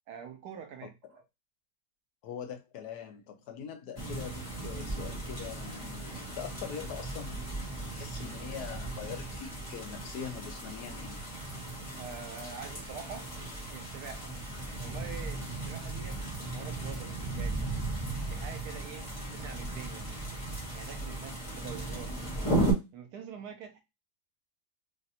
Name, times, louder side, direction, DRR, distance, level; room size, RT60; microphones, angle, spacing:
voice 1, 0.1-1.2 12.0-13.3 13.7-14.3 14.8-17.7 18.3-20.1 20.7-22.2 22.9-23.8, right 7 dB, 75° right, 1.1 m, -45 dB
voice 2, 2.2-11.2, left 7 dB, 75° left, 1.2 m, -43 dB
sound 1, 4.0-22.7, right 2 dB, 25° left, 1.0 m, -36 dB
3.2 x 2.5 x 2.7 m
omnidirectional pair, 1.7 m